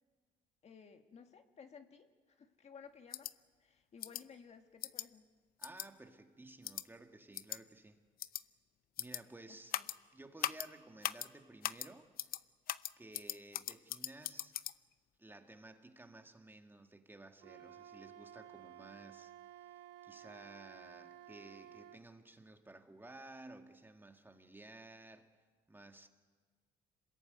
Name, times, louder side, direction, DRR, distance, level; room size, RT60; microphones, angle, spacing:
voice 1, 0.6-3.3 3.6-5.3 9.5-9.9, left 6 dB, 40° left, 6 dB, 1.9 m, -57 dB
sound 1, 3.1-3.3 4.0-4.2 4.8-5.1 5.6-5.9 6.6-6.8 7.3-7.6 8.2-8.4 9.0-9.2 9.7-10.0 10.4-10.7 11.0-11.3 11.6-11.9 12.2-12.4 12.7-14.7, left 12 dB, 60° left, 0.7 m, -39 dB
voice 2, 5.6-8.0 9.0-9.8 10.1-12.1 13.0-14.6 15.2-19.7 20.0-25.3 25.7-26.1, right 2 dB, 10° right, 5 dB, 1.9 m, -55 dB
Wind instrument woodwind instrument, 17.4-22.0, right 11 dB, 85° right, 1.1 m, -55 dB
26.0 x 21.5 x 9.4 m, 1.5 s
cardioid pair, 110°, 17 cm